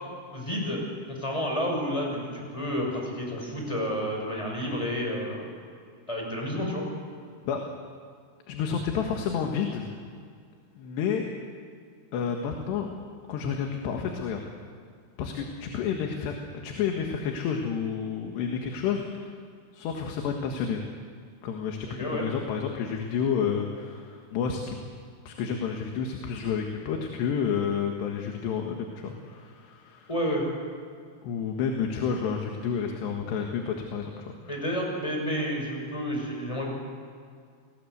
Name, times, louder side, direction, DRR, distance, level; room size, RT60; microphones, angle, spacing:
voice 1, 0.3-0.8 1.1-5.5 6.1-6.8 21.8-22.3 30.1-30.5 34.5-36.7, equal, 5° left, 0 dB, 5.9 m, -30 dB
voice 2, 8.5-9.9 10.8-11.3 12.1-12.9 13.3-14.4 15.2-16.3 16.6-19.3 19.7-20.8 21.4-24.8 25.3-30.1 31.2-34.4, left 7 dB, 85° left, 2 dB, 3.9 m, -30 dB
28.5 x 20.0 x 8.1 m, 2.2 s
omnidirectional pair, 4.8 m